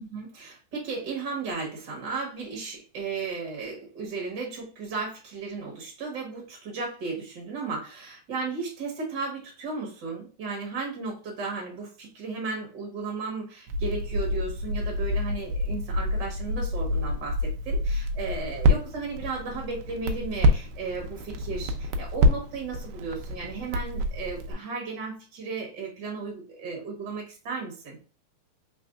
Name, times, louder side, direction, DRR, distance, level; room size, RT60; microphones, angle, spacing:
voice 1, 0.0-28.0, right 4 dB, 50° right, -1 dB, 1.4 m, -35 dB
Crackle, 13.7-24.5, left 1 dB, 80° right, 1.6 m, -27 dB
4.2 x 3.8 x 2.3 m, 0.36 s
omnidirectional pair, 3.5 m